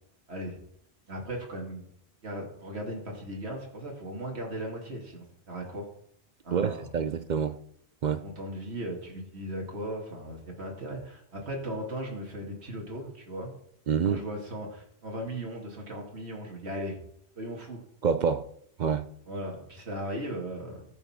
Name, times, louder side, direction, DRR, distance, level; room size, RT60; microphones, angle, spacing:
voice 1, 1.1-1.8 2.2-5.9 6.4-6.8 8.2-13.5 14.0-17.0 17.4-17.8 19.3-20.9, right 1 dB, 85° right, 2.5 m, -37 dB
voice 2, 6.5-7.6 8.0-8.2 13.9-14.2 18.0-18.5 18.8-19.1, right 6 dB, 55° right, 0.6 m, -27 dB
14.0 x 5.5 x 5.7 m
omnidirectional pair, 1.1 m